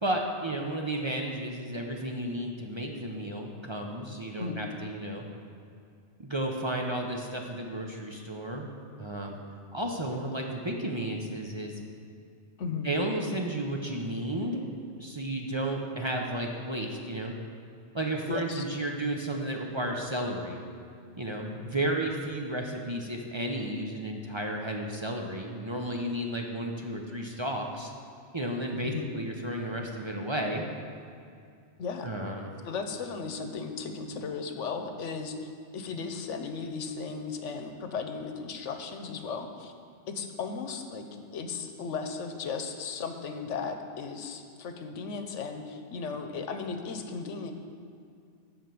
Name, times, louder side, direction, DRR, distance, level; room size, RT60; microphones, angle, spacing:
voice 1, 0.0-5.2 6.2-8.7 9.0-9.4 9.7-11.8 12.8-14.6 15.0-17.3 17.9-20.6 21.2-27.9 28.3-30.6 32.0-32.5, right 1 dB, 25° right, 1 dB, 0.7 m, -33 dB
voice 2, 18.3-18.6 28.8-29.1 31.8-32.1 32.6-39.7 40.1-47.5, left 5 dB, 85° left, 6 dB, 1.1 m, -36 dB
12.5 x 4.6 x 7.7 m, 2.4 s
omnidirectional pair, 1.2 m